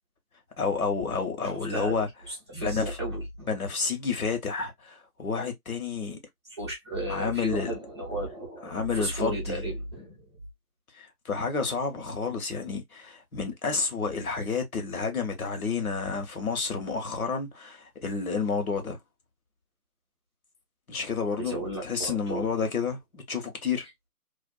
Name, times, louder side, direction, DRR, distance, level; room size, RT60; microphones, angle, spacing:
voice 1, 0.6-2.1 2.5-3.0 3.5-6.2 7.1-7.7 8.6-9.6 10.9-19.0 20.9-23.9, left 5 dB, 65° left, 1.1 m, -30 dB
voice 2, 1.4-1.9 2.3-3.5 6.5-10.3 21.4-22.5, right 1 dB, 20° right, 0.7 m, -34 dB
2.5 x 2.3 x 2.3 m
figure-of-eight pair, 155°, 46 cm